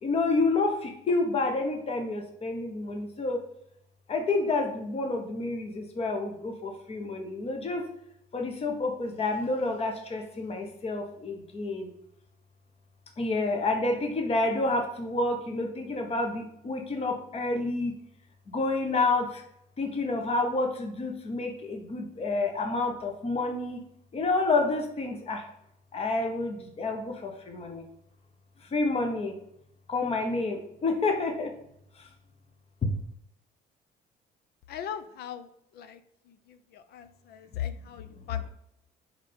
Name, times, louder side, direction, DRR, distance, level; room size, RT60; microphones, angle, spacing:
voice 1, 0.0-3.4 4.1-7.8 8.3-11.9 13.2-17.9 18.5-19.4 19.8-23.8 24.1-25.5 25.9-27.9 28.7-29.3 29.9-31.5 32.0-32.1, left 3 dB, 35° left, 3 dB, 1.3 m, -29 dB
voice 2, 34.7-36.0 36.3-38.5, left 9 dB, 70° left, 11 dB, 0.7 m, -38 dB
4.9 x 4.4 x 5.5 m, 0.78 s
cardioid pair, 110°, 17 cm